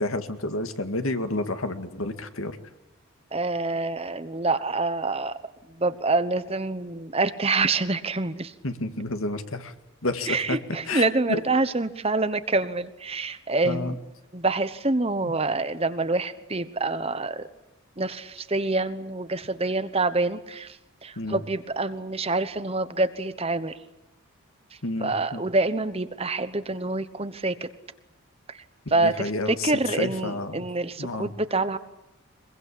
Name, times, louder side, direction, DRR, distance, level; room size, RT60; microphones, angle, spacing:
voice 1, 0.0-2.6 8.6-9.7 10.0-10.6 10.9-11.4 13.6-13.9 21.2-21.4 24.8-25.4 28.9-30.7 31.0-31.3, left 2 dB, 65° left, 8 dB, 2.2 m, -30 dB
voice 2, 3.3-5.4 5.7-8.5 10.3-14.0 14.3-17.5 18.0-23.8 24.7-27.7 28.5-28.6 28.9-31.8, right 3 dB, 25° right, 12 dB, 1.1 m, -26 dB
24.0 x 22.5 x 8.5 m, 0.91 s
head